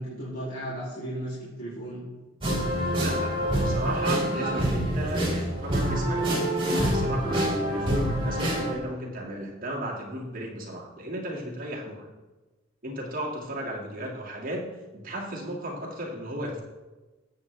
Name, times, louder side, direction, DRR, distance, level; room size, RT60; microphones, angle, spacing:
voice 1, 0.0-2.0, right 1 dB, 45° left, -9 dB, 3.0 m, -35 dB
sound 1, 2.4-8.7, right 1 dB, 25° right, 4.3 m, -26 dB
voice 2, 3.0-12.1 12.8-16.6, right 1 dB, 45° right, -2 dB, 2.1 m, -35 dB
18.5 x 8.1 x 3.3 m, 1.2 s
head